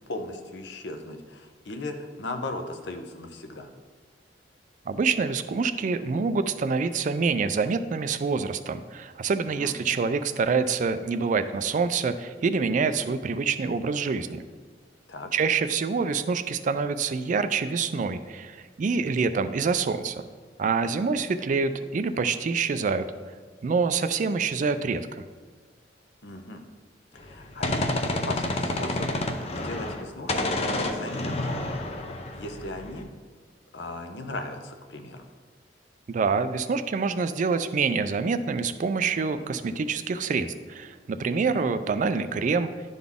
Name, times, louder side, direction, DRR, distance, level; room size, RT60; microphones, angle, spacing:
voice 1, 0.1-3.7 9.6-9.8 15.1-15.3 26.2-26.6 27.1-31.7 32.3-33.1 33.7-35.3 41.4-41.7, left 2 dB, 70° left, 6 dB, 0.7 m, -37 dB
voice 2, 4.9-14.4 15.3-20.2 20.6-23.0 23.6-25.2 36.1-42.7, right 5 dB, 45° right, 11 dB, 0.3 m, -26 dB
Gunshot gunfire, 27.2-30.0 30.3-33.0, left 2 dB, 35° left, 0.6 m, -29 dB
11.0 x 4.0 x 3.6 m, 1.5 s
head